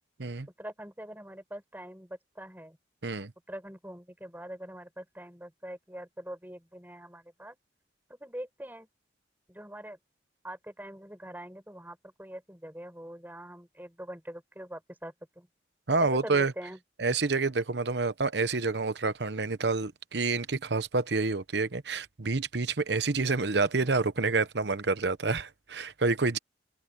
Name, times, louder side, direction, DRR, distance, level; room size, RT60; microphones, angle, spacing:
voice 1, 0.6-2.8 3.5-7.5 8.1-8.9 9.5-10.0 10.4-15.5 16.0-16.8, equal, 10° right, 6.8 m, -43 dB
voice 2, 15.9-16.5 17.0-26.4, right 3 dB, 70° right, 1.0 m, -28 dB
head